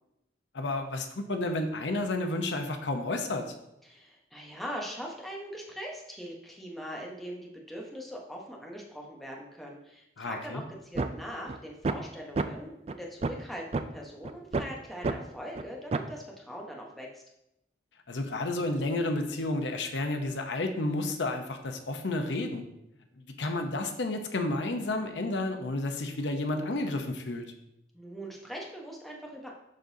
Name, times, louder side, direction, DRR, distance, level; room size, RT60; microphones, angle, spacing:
voice 1, 0.5-3.5 10.2-10.6 18.1-22.7 23.4-27.4, left 2 dB, 85° left, 5 dB, 0.8 m, -31 dB
voice 2, 3.8-17.2 27.9-29.5, equal, ahead, -2 dB, 1.0 m, -41 dB
sound 1, 10.9-11.1 11.5-11.6 11.8-12.0 12.4-12.5 12.9-13.0 13.2-13.4 13.7-13.8 14.2-14.6 15.0-15.1 15.6-15.7 15.9-16.1, right 3 dB, 35° right, 0.3 m, -29 dB
11.5 x 3.9 x 2.7 m, 0.83 s
head